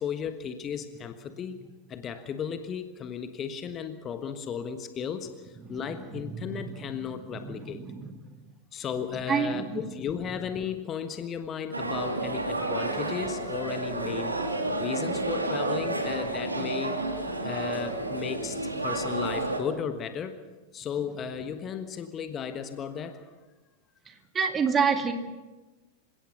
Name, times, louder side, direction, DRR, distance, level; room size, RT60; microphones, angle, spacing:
voice 1, 0.0-1.6 1.9-7.8 8.7-14.4 14.7-17.0 17.4-20.3 20.7-23.3, left 7 dB, 25° left, 9 dB, 1.4 m, -35 dB
voice 2, 5.7-8.1 9.1-9.9 12.6-12.7 24.1-25.1, right 6 dB, 20° right, 5 dB, 2.3 m, -30 dB
sound 1, 11.7-19.6, right 2 dB, 80° right, 2.4 m, -30 dB
28.0 x 16.5 x 5.9 m, 1.2 s
figure-of-eight pair, 90°, 0 cm